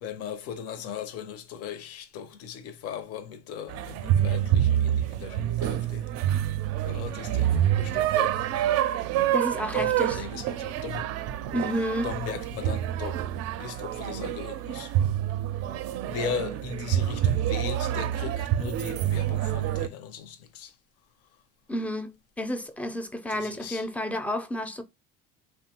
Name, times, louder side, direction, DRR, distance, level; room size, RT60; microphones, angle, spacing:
voice 1, 0.0-6.1 6.8-8.5 9.7-11.0 12.0-13.2 13.6-14.9 16.0-20.7 23.3-23.8, left 7 dB, 55° left, 0.6 m, -38 dB
sound 1, 3.7-19.9, right 11 dB, 60° right, 0.4 m, -27 dB
voice 2, 9.3-10.2 11.5-12.1 21.7-24.8, equal, 5° left, 0.4 m, -31 dB
2.8 x 2.2 x 2.8 m
supercardioid pair, 80°, 29 cm